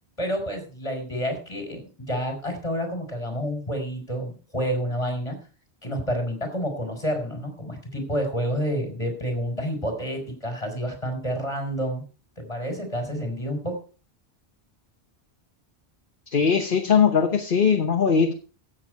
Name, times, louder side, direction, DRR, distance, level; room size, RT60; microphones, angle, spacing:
voice 1, 0.2-5.4 5.8-12.0 12.4-13.7, equal, 30° left, 4.3 m, -29 dB
voice 2, 16.3-18.3, left 6 dB, 55° left, 1.2 m, -20 dB
14.5 x 7.7 x 4.7 m
omnidirectional pair, 1.1 m